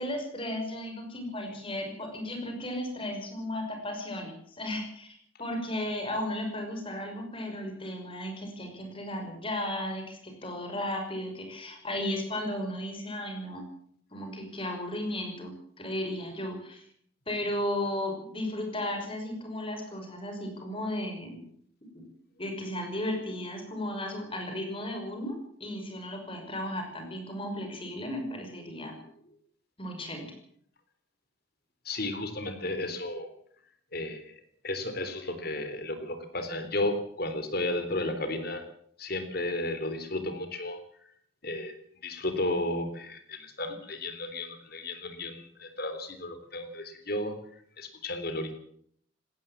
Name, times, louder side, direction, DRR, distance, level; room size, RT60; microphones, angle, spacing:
voice 1, 0.0-5.1 5.4-13.7 14.1-16.9 17.3-21.4 21.9-22.1 22.4-29.0 29.8-30.4, left 1 dB, 25° left, 4 dB, 5.8 m, -35 dB
voice 2, 31.9-33.3 33.9-34.3 34.6-38.6 39.0-40.8 41.4-47.4 47.8-48.5, left 1 dB, 45° left, 9 dB, 3.6 m, -33 dB
19.5 x 17.5 x 7.4 m, 0.64 s
head